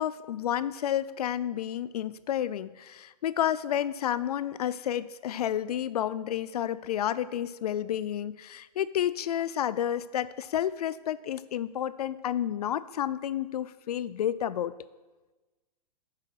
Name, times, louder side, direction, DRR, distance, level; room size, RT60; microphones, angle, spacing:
voice 1, 0.0-14.7, left 10 dB, 70° left, 17 dB, 0.4 m, -30 dB
8.5 x 6.3 x 6.3 m, 1.2 s
hypercardioid pair, 180°, 21 cm